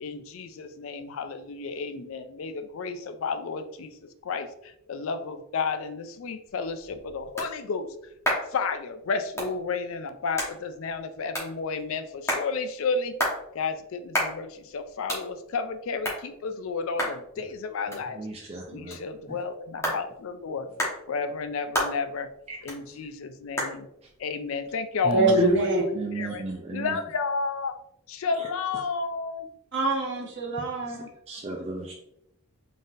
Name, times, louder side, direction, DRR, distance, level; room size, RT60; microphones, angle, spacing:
voice 1, 0.0-4.0 4.2-7.9 8.5-13.1 13.5-18.2 18.7-20.7 21.1-22.3 22.6-23.9 24.2-25.7 26.1-26.4 26.7-27.8 28.1-29.5, left 4 dB, 60° left, 9 dB, 0.4 m, -32 dB
sound 1, 6.5-25.8, equal, 15° left, 1.1 m, -35 dB
voice 2, 17.9-19.0 19.3-19.4 22.5-23.0 25.0-25.4 25.9-27.0 28.3-28.5 30.8-31.0 31.3-31.9, right 2 dB, 25° right, -1 dB, 0.4 m, -35 dB
voice 3, 25.1-25.8 29.7-31.1, right 2 dB, 55° right, -1 dB, 1.0 m, -24 dB
3.9 x 3.8 x 2.5 m, 0.79 s
head